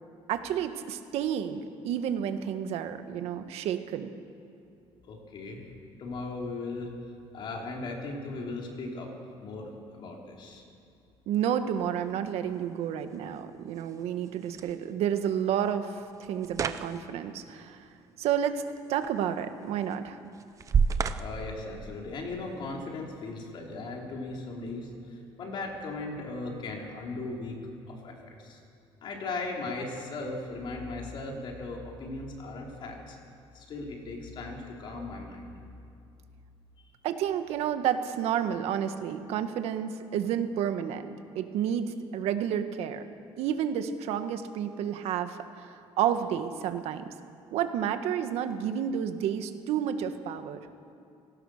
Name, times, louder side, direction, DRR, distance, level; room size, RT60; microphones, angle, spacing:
voice 1, 0.3-4.1 11.3-17.8 18.2-18.6 18.9-20.2 37.0-43.0 43.4-47.0 47.5-50.6, right 9 dB, 75° right, 8 dB, 1.6 m, -30 dB
voice 2, 5.1-5.7 6.0-6.9 7.3-9.1 9.4-10.6 21.2-28.6 29.0-33.2 33.5-35.6, left 3 dB, 50° left, 0 dB, 4.3 m, -38 dB
sound 1, 11.6-22.6, right 6 dB, 30° right, 0.8 m, -35 dB
30.0 x 17.5 x 6.7 m, 2.5 s
cardioid pair, 155°, 11 cm